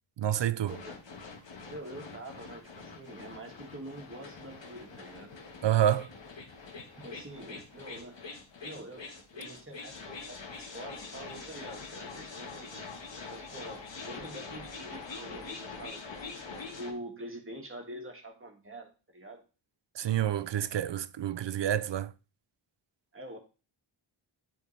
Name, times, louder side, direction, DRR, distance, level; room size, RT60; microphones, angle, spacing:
voice 1, 0.2-0.8 5.6-6.1 20.0-22.1, right 11 dB, 65° right, 0.5 m, -28 dB
sound 1, 0.7-16.9, left 4 dB, 65° left, 1.5 m, -44 dB
voice 2, 1.7-5.3 6.9-8.2 8.6-9.1 9.3-12.8 13.3-19.4 23.1-23.4, right 1 dB, 25° right, 1.9 m, -45 dB
10.5 x 4.4 x 3.3 m
wide cardioid pair, 80°, 48 cm